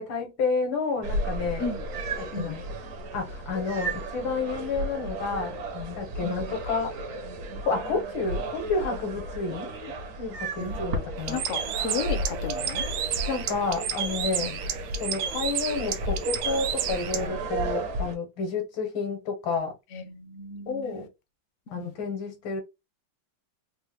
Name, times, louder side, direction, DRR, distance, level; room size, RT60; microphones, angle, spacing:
voice 1, 0.0-1.7 2.2-2.6 3.1-6.9 7.6-11.4 13.3-14.5 15.0-19.7 20.7-21.1 21.7-22.6, left 4 dB, 80° left, 1.9 m, -30 dB
sound 1, 1.0-18.2, right 1 dB, 55° right, 1.1 m, -34 dB
Bird, 11.2-17.3, right 8 dB, 80° right, 1.3 m, -31 dB
voice 2, 11.3-12.8 14.4-14.5 19.9-21.1 21.7-21.9, left 5 dB, 65° left, 0.8 m, -34 dB
4.2 x 2.1 x 3.4 m
omnidirectional pair, 2.1 m